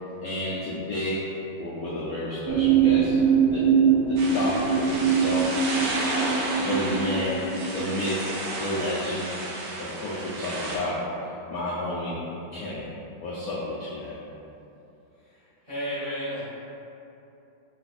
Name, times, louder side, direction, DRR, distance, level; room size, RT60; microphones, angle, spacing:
voice 1, 0.2-1.3 1.6-3.2 3.5-3.6 4.1-5.5 6.6-7.5 7.7-8.3 8.5-9.3 9.8-11.0 11.5-12.2 12.5-12.8 13.2-14.2, left 1 dB, 80° left, -7 dB, 0.8 m, -30 dB
sound 1, 2.5-7.8, right 6 dB, 90° right, 1.9 m, -23 dB
sound 2, 4.2-10.8, right 2 dB, 75° right, 0.8 m, -32 dB
voice 2, 15.6-16.4, equal, 30° right, -12 dB, 0.5 m, -31 dB
3.7 x 2.4 x 4.1 m, 2.8 s
omnidirectional pair, 2.1 m